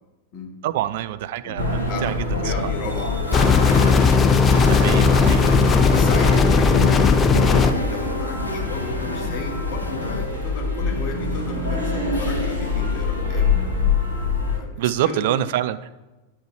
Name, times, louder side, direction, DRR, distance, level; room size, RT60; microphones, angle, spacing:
voice 1, 0.6-2.7 4.5-5.6 14.8-15.8, right 12 dB, 50° right, 13 dB, 0.3 m, -26 dB
voice 2, 1.4-4.0 5.7-13.5 14.5-15.4, left 4 dB, 40° left, 2 dB, 1.2 m, -34 dB
sound 1, 1.6-14.6, left 3 dB, 85° right, 1.1 m, -25 dB
sound 2, 2.9-10.3, left 2 dB, 85° left, 0.6 m, -32 dB
sound 3, 3.3-7.7, left 5 dB, 20° left, 0.5 m, -16 dB
9.4 x 4.1 x 3.3 m, 1.1 s
figure-of-eight pair, 90°, 0 cm